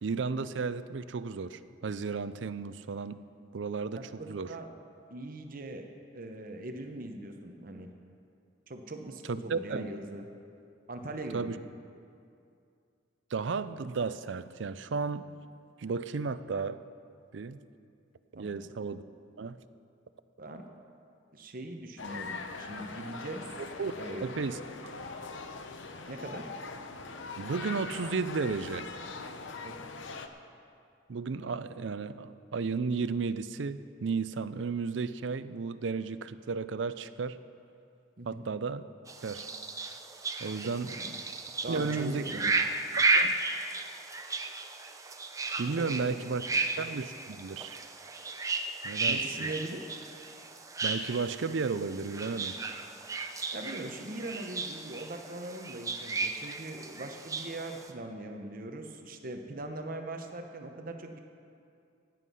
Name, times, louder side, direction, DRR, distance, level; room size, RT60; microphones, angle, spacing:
voice 1, 0.0-3.2 3.5-4.5 9.3-9.9 11.3-11.6 13.3-15.2 15.8-16.8 17.3-17.6 18.3-19.0 19.4-19.6 23.8-23.9 24.2-24.9 27.4-28.9 31.1-37.4 38.3-38.8 39.2-39.5 40.4-40.9 41.7-42.3 43.0-43.4 45.6-46.4 46.8-47.8 48.8-49.2 50.8-52.6, right 4 dB, 75° right, 14 dB, 0.5 m, -33 dB
voice 2, 4.0-4.7 5.1-5.9 6.1-7.9 8.7-10.3 10.9-11.6 18.4-18.6 20.4-20.6 21.3-23.5 23.9-24.3 26.1-26.5 29.6-29.8 38.2-38.5 40.9-41.2 41.6-42.6 45.8-46.2 46.5-46.6 49.0-49.9 53.5-61.2, right 2 dB, 45° right, 4 dB, 0.9 m, -41 dB
sound 1, 22.0-30.3, left 4 dB, 75° left, 0.8 m, -42 dB
sound 2, 39.1-57.9, right 3 dB, 15° right, 0.6 m, -34 dB
16.0 x 9.2 x 5.5 m, 2.5 s
head